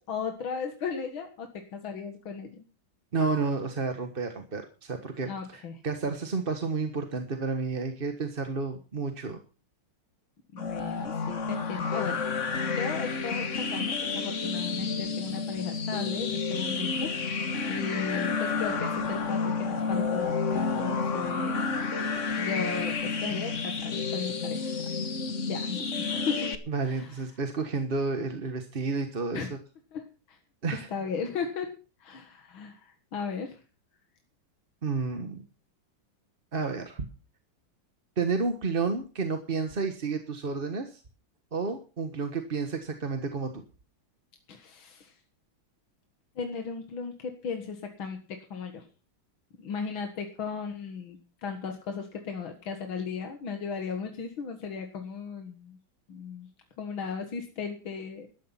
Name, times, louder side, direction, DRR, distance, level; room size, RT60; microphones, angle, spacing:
voice 1, 0.1-2.6 5.2-5.8 10.5-12.2 12.6-21.8 22.4-24.8 25.5-26.5 26.8-27.3 29.3-29.5 29.9-30.4 30.7-31.7 32.0-33.6 44.5-45.1 46.4-48.9 49.6-55.8 56.1-56.5 56.8-58.3, left 5 dB, 80° left, 5 dB, 2.5 m, -36 dB
voice 2, 3.1-9.4 26.7-29.5 30.6-30.9 34.8-35.4 36.5-37.1 38.2-41.0 41.5-43.6, right 4 dB, 30° right, 6 dB, 1.3 m, -31 dB
sound 1, 10.6-26.6, left 4 dB, 40° left, 1.6 m, -30 dB
13.5 x 12.5 x 5.6 m, 0.36 s
omnidirectional pair, 2.2 m